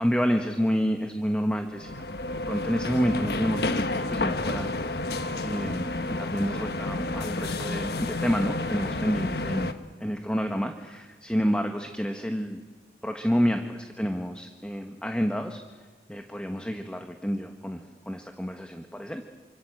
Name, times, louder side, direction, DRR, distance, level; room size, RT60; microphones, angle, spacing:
voice 1, 0.0-2.0 2.5-4.7 5.4-9.7 10.0-12.6 13.0-15.6 16.1-19.2, equal, 5° left, 5 dB, 1.3 m, -29 dB
sound 1, 1.7-9.7, left 2 dB, 65° left, 1.4 m, -30 dB
28.5 x 26.0 x 7.9 m, 1.4 s
head